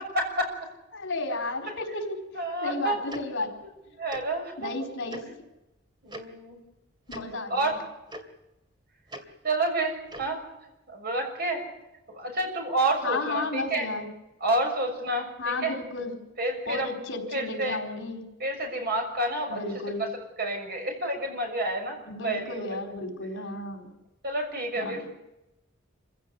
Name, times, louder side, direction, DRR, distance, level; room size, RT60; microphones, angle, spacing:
voice 1, 0.1-0.5 2.3-3.0 4.0-4.8 6.0-6.6 7.5-7.8 9.4-10.4 10.9-11.6 12.1-13.9 14.4-15.7 16.4-16.9 17.3-17.8 18.4-19.6 20.0-20.1 20.4-22.8 24.2-25.0, right 2 dB, 50° right, 3 dB, 6.4 m, -29 dB
voice 2, 0.9-2.0 2.6-3.5 4.6-5.3 7.1-7.7 13.0-14.1 15.4-16.1 16.7-18.2 19.5-20.1 22.1-23.9 24.8-25.0, left 2 dB, 65° left, 4 dB, 4.4 m, -33 dB
Tick-tock, 3.1-3.2 4.1-4.2 5.1-5.2 6.1-6.2 7.1-7.2 8.1-8.2 9.1-9.2 10.1-10.3, right 1 dB, 25° right, 2.7 m, -40 dB
26.5 x 16.5 x 8.4 m, 0.97 s
head